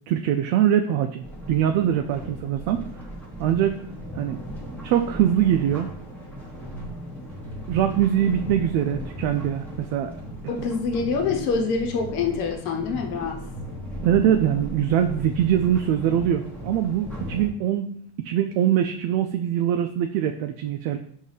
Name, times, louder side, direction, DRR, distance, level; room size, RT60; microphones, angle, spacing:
voice 1, 0.1-2.9 3.4-3.9 4.1-4.4 4.8-5.9 7.7-10.1 14.0-21.0, right 10 dB, 65° right, 5 dB, 0.5 m, -23 dB
sound 1, 1.2-17.5, equal, 5° left, 1.0 m, -37 dB
voice 2, 10.5-13.4, left 5 dB, 85° left, 1 dB, 1.1 m, -26 dB
5.4 x 2.7 x 3.3 m, 0.63 s
cardioid pair, 120°, 50 cm